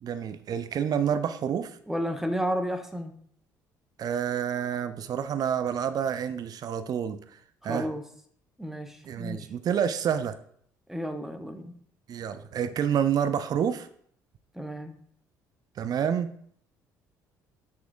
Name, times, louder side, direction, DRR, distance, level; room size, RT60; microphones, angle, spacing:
voice 1, 0.0-1.8 4.0-7.2 7.6-7.9 9.0-10.4 12.1-13.9 15.8-16.3, right 8 dB, 40° right, 11 dB, 0.4 m, -28 dB
voice 2, 1.9-3.2 7.6-8.0 8.6-9.4 10.9-11.8 14.5-15.0, equal, 5° right, 7 dB, 0.7 m, -32 dB
6.0 x 3.6 x 2.4 m, 0.62 s
figure-of-eight pair, 50°, 10 cm